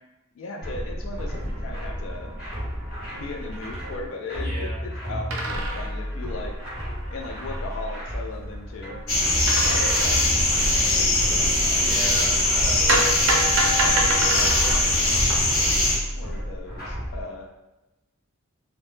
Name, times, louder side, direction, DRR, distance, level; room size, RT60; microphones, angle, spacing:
voice 1, 0.4-2.3 3.1-6.5 7.1-9.0 9.6-10.2 10.9-12.1 16.1-17.5, left 3 dB, 65° left, 1 dB, 0.3 m, -37 dB
sound 1, 0.6-17.2, equal, 50° left, 0.9 m, -32 dB
sound 2, 1.2-2.2 2.6-2.7 2.8-4.0 5.3-8.0 9.5-11.0 12.9-15.7, right 1 dB, 70° right, 0.4 m, -29 dB
voice 2, 4.4-4.8 11.8-13.2 13.7-14.9, right 2 dB, 5° left, -7 dB, 0.6 m, -36 dB
sound 3, 9.1-16.0, left 1 dB, 90° left, 0.7 m, -21 dB
2.0 x 2.0 x 3.0 m, 1.0 s
head